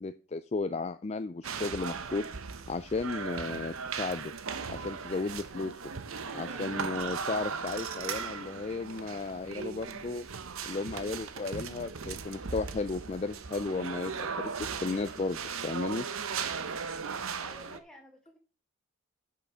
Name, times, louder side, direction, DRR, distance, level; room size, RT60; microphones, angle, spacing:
voice 1, 0.0-2.3 2.7-4.3 4.7-5.8 6.4-10.2 10.7-16.0, left 3 dB, 30° left, 11 dB, 0.3 m, -34 dB
sound 1, 1.4-17.8, right 5 dB, 80° right, 0.8 m, -38 dB
voice 2, 6.3-6.9 17.4-18.4, equal, 5° left, 2 dB, 1.8 m, -54 dB
8.4 x 5.8 x 6.1 m, 0.37 s
head